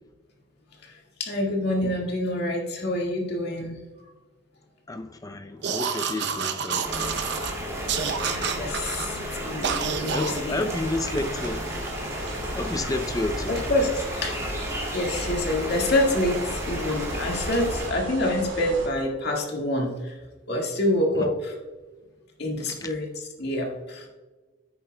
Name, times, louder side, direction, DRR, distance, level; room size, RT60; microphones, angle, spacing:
voice 1, 0.8-3.7 8.1-10.7 13.5-14.6 14.9-20.2 20.5-21.5 22.4-24.1, left 1 dB, 60° left, -1 dB, 1.9 m, -27 dB
voice 2, 4.9-6.8 10.1-11.6 12.5-13.6 21.1-21.3 22.7-22.9, left 2 dB, 20° left, 7 dB, 0.5 m, -30 dB
sound 1, 5.6-7.5 7.9-9.1 9.6-10.4, right 6 dB, 65° right, 0.8 m, -28 dB
sound 2, 6.8-17.9, equal, 15° right, 2.3 m, -33 dB
sound 3, 10.7-18.9, right 1 dB, 80° right, 2.2 m, -37 dB
10.5 x 8.7 x 2.3 m, 1.2 s
head